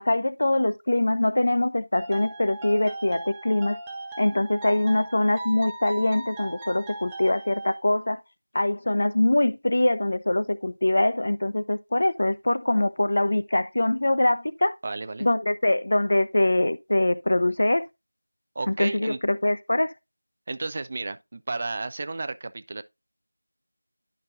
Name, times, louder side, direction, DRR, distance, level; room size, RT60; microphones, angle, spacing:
voice 1, 0.0-3.8 4.2-8.2 8.5-14.7 15.2-17.9 18.7-19.9, left 1 dB, 50° left, 0.9 m, -23 dB
sound 1, 1.9-7.8, right 2 dB, 10° right, 1.2 m, -38 dB
voice 2, 14.8-15.3 18.6-19.2 20.5-22.8, right 3 dB, 30° right, 0.6 m, -32 dB
12.0 x 5.7 x 2.6 m
figure-of-eight pair, 170°, 0 cm